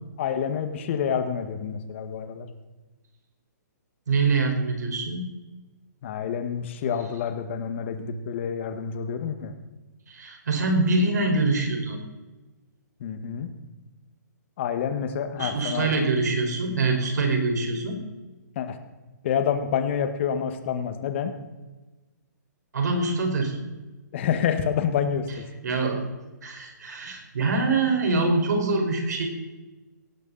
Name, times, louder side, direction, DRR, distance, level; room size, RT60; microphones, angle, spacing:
voice 1, 0.2-2.5 6.0-9.5 13.0-13.5 14.6-16.1 18.6-18.8 19.2-21.3 24.1-25.5, left 8 dB, 40° left, 8 dB, 1.9 m, -28 dB
voice 2, 4.1-5.3 10.1-12.0 15.4-18.0 22.7-23.6 25.6-26.0 26.4-29.3, right 3 dB, 65° right, 3 dB, 5.1 m, -24 dB
18.0 x 15.0 x 4.3 m, 1.2 s
hypercardioid pair, 155°, 10 cm